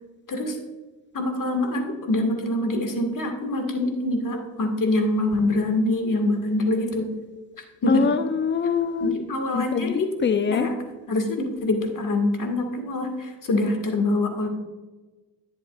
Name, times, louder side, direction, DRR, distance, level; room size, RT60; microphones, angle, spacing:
voice 1, 1.1-7.1 7.8-8.1 9.0-10.1 10.5-10.7 11.1-14.5, left 2 dB, 40° left, 4 dB, 2.0 m, -25 dB
voice 2, 7.9-9.1 9.5-10.7, left 6 dB, 25° left, 11 dB, 0.7 m, -24 dB
10.0 x 8.4 x 2.4 m, 1.2 s
supercardioid pair, 65°, 48 cm